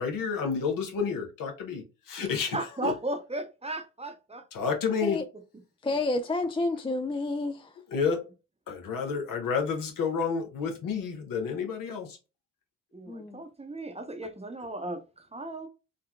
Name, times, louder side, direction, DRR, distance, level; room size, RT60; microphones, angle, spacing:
voice 1, 0.0-2.6 2.8-2.9 4.5-5.2 7.9-8.2 8.7-12.2, left 5 dB, 70° left, 1.0 m, -30 dB
voice 2, 2.5-4.4 12.9-15.7, right 2 dB, 20° right, 0.8 m, -36 dB
voice 3, 5.8-7.7 13.1-13.4, left 2 dB, 15° left, 0.4 m, -30 dB
3.7 x 2.3 x 2.3 m
hypercardioid pair, 45°, 35 cm